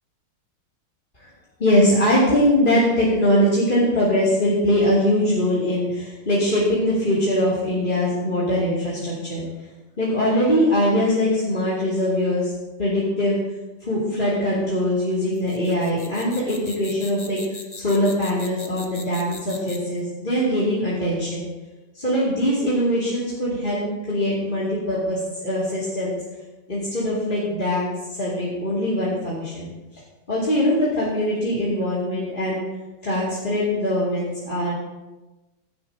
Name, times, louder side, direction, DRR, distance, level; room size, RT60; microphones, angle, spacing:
voice 1, 1.6-9.5 10.0-12.5 12.8-13.4 13.8-17.4 17.7-21.5 21.9-26.2 26.7-29.7 30.3-32.6 33.0-34.7, left 1 dB, 20° left, -8 dB, 2.9 m, -22 dB
sound 1, 15.3-20.0, left 2 dB, 35° left, 0.4 m, -40 dB
16.5 x 12.5 x 2.9 m, 1.1 s
omnidirectional pair, 2.4 m